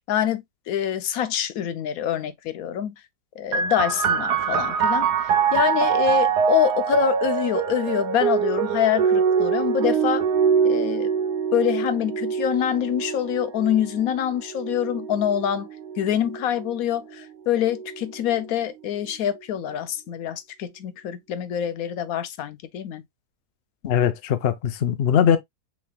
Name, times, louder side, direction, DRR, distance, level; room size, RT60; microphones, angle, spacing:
voice 1, 0.1-2.9 3.4-10.2 10.6-11.1 11.5-15.7 16.0-23.0, left 10 dB, 70° left, 0.9 m, -25 dB
sound 1, 3.5-16.8 17.6-18.4, right 7 dB, 75° right, 1.2 m, -24 dB
voice 2, 23.8-25.4, left 8 dB, 85° left, 0.5 m, -20 dB
6.0 x 3.4 x 2.2 m
omnidirectional pair, 1.9 m